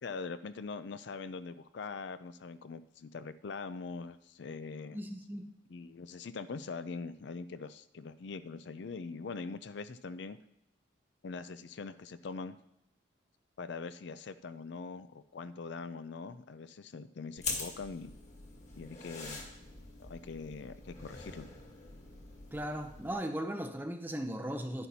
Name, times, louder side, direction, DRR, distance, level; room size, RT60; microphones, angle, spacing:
voice 1, 0.0-5.0 5.7-10.4 11.2-12.6 13.6-18.1 18.8-19.4 20.0-21.5, left 4 dB, 60° left, 13 dB, 0.4 m, -42 dB
voice 2, 4.9-5.5 22.5-24.9, equal, 10° right, 6 dB, 0.6 m, -37 dB
sound 1, 17.4-23.1, left 3 dB, 35° left, 1.9 m, -44 dB
11.0 x 10.0 x 2.8 m, 0.81 s
head